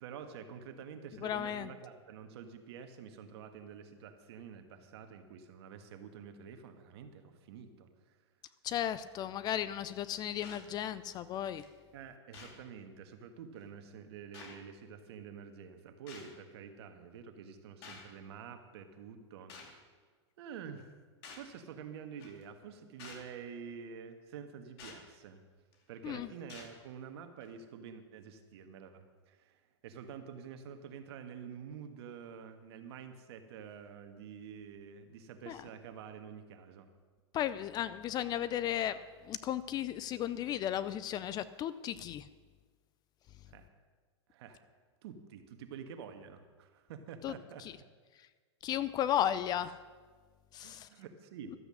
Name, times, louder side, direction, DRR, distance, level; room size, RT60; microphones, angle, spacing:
voice 1, 0.0-8.2 11.9-19.9 20.4-20.9 21.3-25.4 25.9-36.9 43.5-43.7 44.3-44.6 45.0-47.6 50.6-51.5, right 7 dB, 65° right, 7 dB, 1.5 m, -48 dB
voice 2, 1.2-1.7 8.6-11.6 26.0-26.3 35.5-35.6 37.3-42.2 47.2-47.3 48.6-49.8 50.5-50.9, left 11 dB, 30° left, 15 dB, 0.4 m, -35 dB
sound 1, 10.4-10.7 11.6-11.7 12.3-12.6 13.6-13.7 14.3-14.6 16.1-16.3 17.8-18.1 19.5-19.8 21.2-21.5 22.2-22.4 23.0-23.3 24.8-25.0 25.7-26.0 26.5-26.7 27.4-27.5, left 4 dB, 60° left, 2.5 m, -50 dB
13.0 x 8.2 x 6.3 m, 1.5 s
hypercardioid pair, 125°, 15 cm